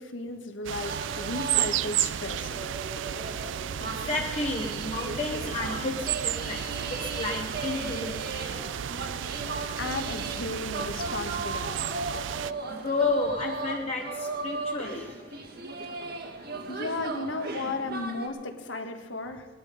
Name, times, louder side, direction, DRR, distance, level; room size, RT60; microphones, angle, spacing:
voice 1, 0.0-2.5 9.8-11.8 16.7-19.5, left 2 dB, 80° left, 5 dB, 1.7 m, -35 dB
sound 1, 0.6-12.5, right 11 dB, 70° right, 0.3 m, -33 dB
sound 2, 0.8-18.3, right 3 dB, 55° right, 1.7 m, -37 dB
Fire / Fireworks, 2.0-15.2, left 1 dB, 55° left, 2.8 m, -51 dB
voice 2, 3.8-8.6 12.7-15.5, left 3 dB, 35° left, 1 dB, 1.0 m, -32 dB
19.0 x 12.0 x 5.0 m, 1.5 s
head